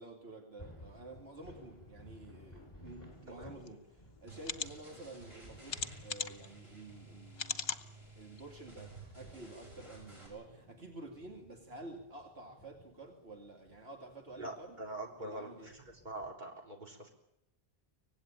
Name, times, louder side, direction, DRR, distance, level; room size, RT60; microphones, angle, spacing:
voice 1, 0.0-7.8 8.2-14.8 15.2-15.7, right 2 dB, 80° right, 2 dB, 2.7 m, -50 dB
sound 1, 0.6-16.3, left 1 dB, 30° left, 8.2 m, -58 dB
sound 2, 3.7-3.8 4.4-4.7 5.7-6.5 7.4-7.8 8.4-8.5 8.8-8.9, left 5 dB, 70° left, 1.3 m, -37 dB
sound 3, 4.3-10.3, right 3 dB, 30° right, 7.4 m, -54 dB
voice 2, 14.4-17.1, right 2 dB, 45° right, 1 dB, 3.7 m, -44 dB
24.5 x 18.5 x 8.9 m, 0.83 s
omnidirectional pair, 1.0 m